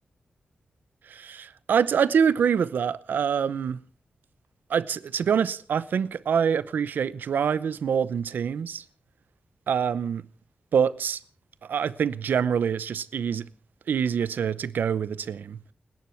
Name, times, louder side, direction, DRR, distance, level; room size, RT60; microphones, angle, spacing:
voice 1, 1.1-3.8 4.7-8.8 9.7-10.2 10.7-11.2 11.6-13.5 13.9-15.6, right 7 dB, 90° right, 0.7 m, -25 dB
30.0 x 10.5 x 4.5 m
wide cardioid pair, 90°, 3 cm